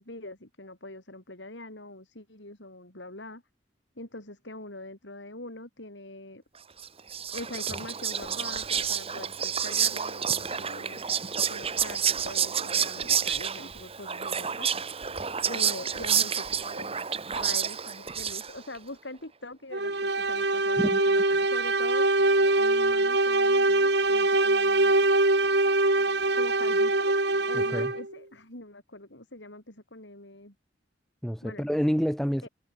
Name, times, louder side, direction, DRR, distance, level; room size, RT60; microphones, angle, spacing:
voice 1, 0.0-3.4 4.0-6.4 7.3-11.0 11.5-14.7 15.5-17.0 17.3-21.2 21.5-24.9 26.3-27.1 27.5-30.5 31.4-31.7 32.4-32.5, left 2 dB, 85° left, 7.8 m, -43 dB
Whispering, 6.8-18.8, right 7 dB, 35° right, 1.9 m, -29 dB
sound 1, 19.7-28.1, right 2 dB, 65° right, 4.2 m, -23 dB
voice 2, 27.5-27.9 31.2-32.5, equal, ahead, 3.5 m, -28 dB
head